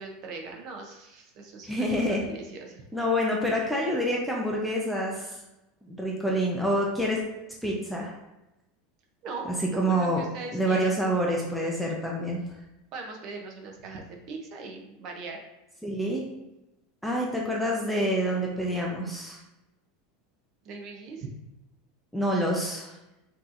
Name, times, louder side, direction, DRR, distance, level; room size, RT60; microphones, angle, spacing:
voice 1, 0.0-2.8 9.2-11.0 12.9-15.4 20.6-21.3, right 4 dB, 35° right, 2 dB, 0.7 m, -40 dB
voice 2, 1.6-2.2 2.9-5.4 5.8-7.2 7.6-8.2 9.8-10.2 10.5-12.4 15.8-16.2 17.0-19.4 22.1-22.9, equal, ahead, -2 dB, 0.5 m, -27 dB
5.8 x 2.8 x 2.5 m, 0.96 s
supercardioid pair, 165°, 0 cm